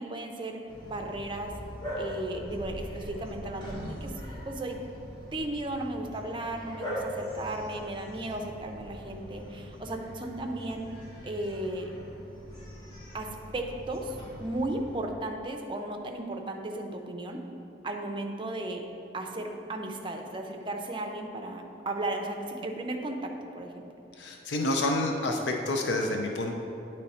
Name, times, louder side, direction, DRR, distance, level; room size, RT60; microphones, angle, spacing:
voice 1, 0.0-1.5 2.0-4.1 4.5-4.8 5.3-10.9 11.2-11.9 13.1-17.4 17.8-18.9 19.1-23.8, right 1 dB, 30° right, 3 dB, 0.5 m, -35 dB
Bark, 0.7-15.0, equal, 25° left, 1.3 m, -41 dB
voice 2, 24.2-26.5, left 2 dB, 85° left, 2 dB, 0.5 m, -28 dB
9.2 x 3.2 x 4.2 m, 2.7 s
head